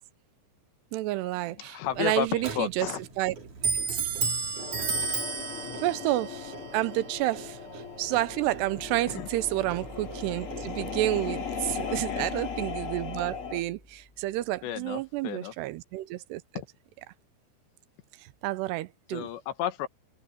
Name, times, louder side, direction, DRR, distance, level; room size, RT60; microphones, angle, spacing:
voice 1, 0.9-2.9 3.2-3.4 3.9-4.0 5.8-16.4 18.4-19.3, right 17 dB, 85° right, 2.8 m, -30 dB
voice 2, 1.6-3.0 9.1-9.3 11.9-12.3 14.6-15.5 16.6-16.7 19.1-19.9, left 11 dB, 85° left, 3.5 m, -33 dB
Clock, 1.8-11.1, right 4 dB, 45° right, 4.9 m, -35 dB
sound 1, 4.6-13.6, left 6 dB, 40° left, 2.5 m, -38 dB
sound 2, 8.0-15.1, left 1 dB, 15° left, 1.2 m, -46 dB
omnidirectional pair, 4.9 m